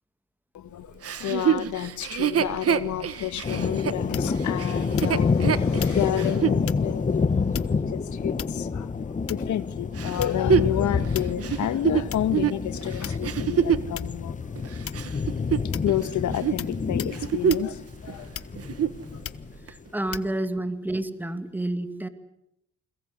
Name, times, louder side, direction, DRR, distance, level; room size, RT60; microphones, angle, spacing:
voice 1, 0.5-7.3 7.5-14.4 15.6-18.3, left 12 dB, 75° left, 12 dB, 1.7 m, -30 dB
Chuckle chortle, 1.0-6.6 7.2-7.3 10.0-13.9 14.6-16.0 16.3-16.6 17.0-17.8 18.1-18.2 18.6-19.0 19.7-19.8, right 8 dB, 50° right, 1.4 m, -26 dB
sound 1, 3.4-19.5, left 5 dB, 25° left, 1.2 m, -28 dB
sound 2, 4.1-4.5 4.9-5.4 5.8-6.0 6.6-6.9 7.5-7.9 8.4-8.8 9.3-9.6 10.2-10.6 11.1-11.5 12.1-12.3 13.0-13.5 13.9-14.2 14.8-15.2 15.7-16.0 16.6-16.7 17.0-17.2 17.5-17.7 18.3-18.7 19.2-19.5 20.1-20.3, left 9 dB, 50° left, 1.0 m, -37 dB
voice 2, 19.7-22.1, right 1 dB, 5° right, 10 dB, 2.3 m, -29 dB
29.0 x 22.0 x 8.2 m, 0.77 s
cardioid pair, 90°, 30 cm